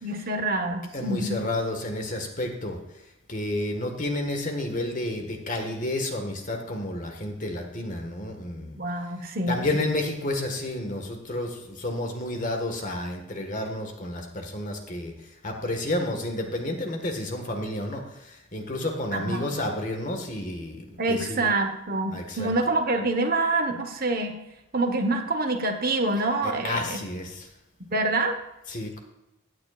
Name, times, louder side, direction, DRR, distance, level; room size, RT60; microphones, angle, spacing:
voice 1, 0.0-1.5 8.8-9.7 19.1-19.7 21.0-24.4 24.7-27.0 27.9-28.4, right 2 dB, 45° right, 5 dB, 1.2 m, -26 dB
voice 2, 0.9-2.8 3.3-8.8 9.5-21.4 22.1-22.5 26.4-27.5 28.7-29.0, left 1 dB, 40° left, 3 dB, 1.7 m, -31 dB
16.0 x 9.6 x 2.5 m, 0.92 s
head